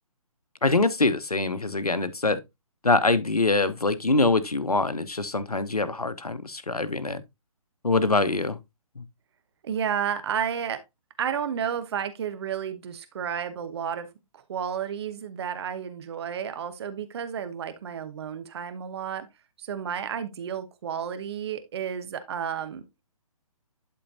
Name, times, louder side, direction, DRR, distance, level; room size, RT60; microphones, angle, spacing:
voice 1, 0.6-2.4 2.8-7.2 7.8-8.6 9.0-9.1, left 3 dB, 90° left, 1.1 m, -24 dB
voice 2, 9.6-10.8 11.2-14.1 14.3-19.3 19.6-22.8, right 8 dB, 45° right, 1.0 m, -31 dB
11.5 x 4.5 x 2.7 m
figure-of-eight pair, 140°, 19 cm